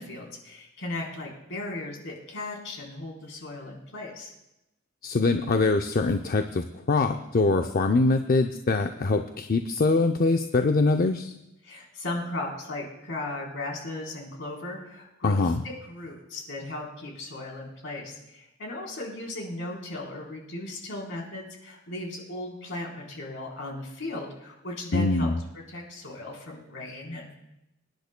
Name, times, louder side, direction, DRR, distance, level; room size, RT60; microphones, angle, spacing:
voice 1, 0.0-4.3 11.6-15.5 15.8-27.3, left 2 dB, 65° left, -1 dB, 3.8 m, -37 dB
voice 2, 5.0-11.3 15.2-15.6 24.9-25.4, left 3 dB, 45° left, 6 dB, 0.5 m, -23 dB
25.5 x 10.5 x 2.2 m, 0.90 s
head